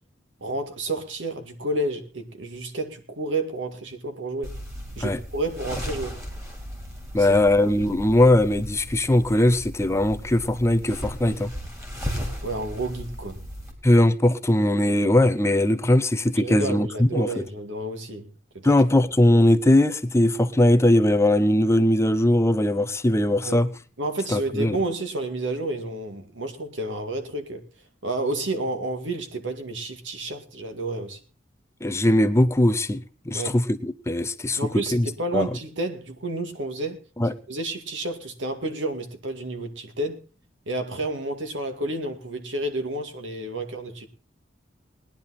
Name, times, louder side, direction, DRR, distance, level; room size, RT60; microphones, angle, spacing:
voice 1, 0.4-4.5 5.0-6.2 7.2-7.3 12.4-13.4 16.3-18.3 18.5-18.8 23.4-23.6 24.0-27.6 28.0-31.2 33.3-33.5 34.6-37.0 37.5-40.2 40.7-44.1, right 2 dB, 80° right, 2.1 m, -30 dB
sound 1, 4.4-13.7, equal, 15° right, 4.0 m, -36 dB
voice 2, 7.1-11.5 13.8-17.4 18.6-23.7 24.3-24.8 31.8-35.1 35.3-35.5 37.2-37.3, left 1 dB, 15° left, 0.6 m, -20 dB
19.5 x 10.5 x 4.2 m
head